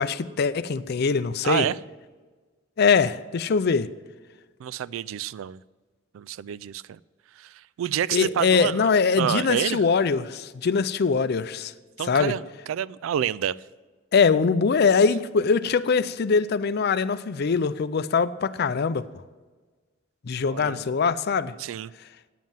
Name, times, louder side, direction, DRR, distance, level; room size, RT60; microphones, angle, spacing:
voice 1, 0.0-1.7 2.8-3.9 8.1-11.7 12.1-12.3 14.1-19.1 20.2-21.5, left 5 dB, 55° left, 0.4 m, -22 dB
voice 2, 1.4-1.8 4.6-5.6 6.1-7.0 7.4-8.9 9.2-9.8 12.0-13.6 20.5-20.8 21.6-21.9, right 9 dB, 80° right, 0.3 m, -28 dB
9.3 x 7.5 x 7.1 m
head